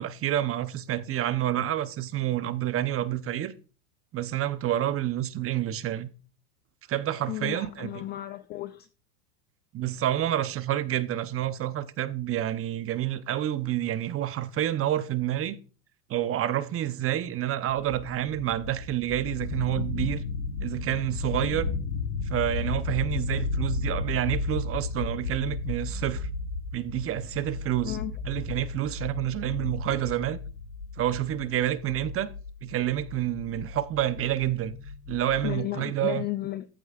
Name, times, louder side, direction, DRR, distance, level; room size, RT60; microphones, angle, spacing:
voice 1, 0.0-3.5 4.1-6.1 6.9-8.0 9.7-15.6 16.1-20.2 20.6-21.7 22.3-26.3 26.7-28.0 28.3-30.4 31.0-32.3 32.6-34.8 35.1-36.3, right 12 dB, 30° right, 0.8 m, -28 dB
voice 2, 7.3-8.9 27.8-28.2 35.4-36.7, left 15 dB, 25° left, 0.3 m, -34 dB
sound 1, 17.7-35.5, left 4 dB, 85° left, 1.6 m, -34 dB
14.0 x 8.1 x 2.4 m
hypercardioid pair, 100°, 47 cm